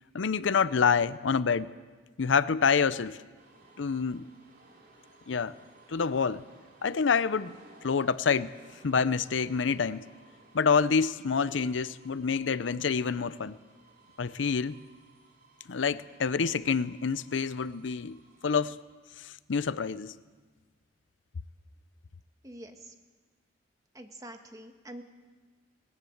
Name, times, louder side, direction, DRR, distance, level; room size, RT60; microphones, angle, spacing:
voice 1, 0.1-1.7 2.2-3.2 3.8-4.2 5.3-5.5 5.9-6.4 6.8-7.5 7.8-8.5 8.8-10.0 10.5-13.6 14.2-14.8 15.7-18.8 19.2-20.1, left 5 dB, 90° left, 16 dB, 0.6 m, -27 dB
sound 1, 3.4-18.7, right 2 dB, 50° right, 4.0 m, -59 dB
voice 2, 22.4-22.9 23.9-25.0, right 1 dB, 20° right, 5 dB, 1.5 m, -45 dB
19.5 x 18.5 x 8.0 m, 1.4 s
head